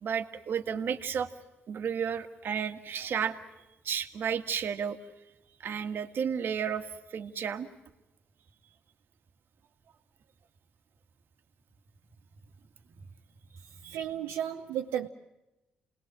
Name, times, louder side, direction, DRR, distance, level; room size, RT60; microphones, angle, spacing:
voice 1, 0.0-1.3 1.7-3.4 3.9-5.0 5.6-7.7 13.8-14.0, right 7 dB, 65° right, 1.8 m, -32 dB
voice 2, 13.9-15.1, right 10 dB, 90° right, 1.0 m, -33 dB
28.5 x 20.0 x 7.5 m
supercardioid pair, 65°, 4 cm